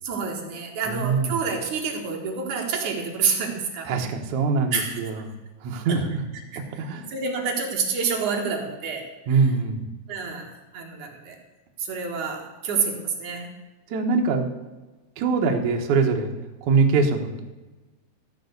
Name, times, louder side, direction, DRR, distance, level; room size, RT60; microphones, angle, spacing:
voice 1, 0.0-3.9 4.7-5.0 5.9-6.0 6.5-6.6 7.1-9.1 10.1-11.4 11.8-13.5, right 5 dB, 55° right, 1 dB, 2.4 m, -28 dB
voice 2, 0.9-1.3 3.9-5.2 5.6-6.2 6.6-7.1 9.3-9.8 13.9-14.5 15.2-16.3 16.6-17.4, right 4 dB, 75° right, 3 dB, 1.7 m, -23 dB
14.5 x 5.6 x 8.0 m, 1.2 s
omnidirectional pair, 5.4 m